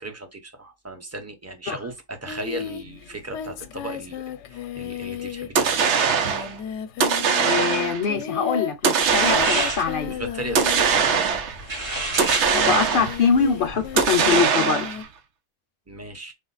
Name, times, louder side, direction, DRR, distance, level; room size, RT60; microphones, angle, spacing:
voice 1, 0.0-5.9 10.1-11.4 15.9-16.3, right 2 dB, 15° right, 0.7 m, -36 dB
Singing, 2.3-11.6 12.1-15.0, left 9 dB, 90° left, 0.9 m, -34 dB
sound 1, 5.6-6.5 7.0-8.1 8.8-9.9 10.6-11.6 12.2-13.3 14.0-15.1, right 6 dB, 85° right, 1.0 m, -21 dB
voice 2, 7.3-10.1 12.2-14.9, left 6 dB, 55° left, 0.7 m, -24 dB
sound 2, 9.0-14.4, right 2 dB, 65° right, 2.5 m, -32 dB
5.0 x 2.1 x 3.9 m
omnidirectional pair, 1.2 m